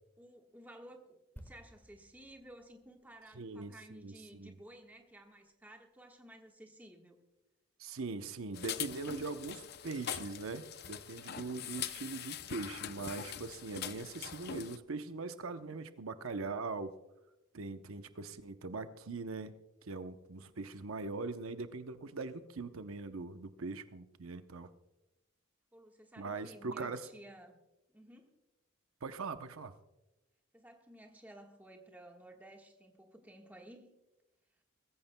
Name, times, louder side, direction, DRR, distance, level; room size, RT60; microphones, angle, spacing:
voice 1, 0.2-7.2 12.0-12.3 25.7-27.6 27.9-28.3 30.5-33.9, right 1 dB, 10° right, 2 dB, 1.4 m, -55 dB
sound 1, 1.4-5.0 5.3-5.5, equal, 10° left, 1.4 m, -58 dB
voice 2, 3.4-4.6 7.8-16.9 17.5-19.5 19.9-24.7 26.2-27.1 29.0-29.7, right 3 dB, 85° right, 9 dB, 0.8 m, -41 dB
sound 2, 8.5-14.8, left 9 dB, 50° left, 0.5 m, -43 dB
22.5 x 14.5 x 2.2 m, 1.0 s
head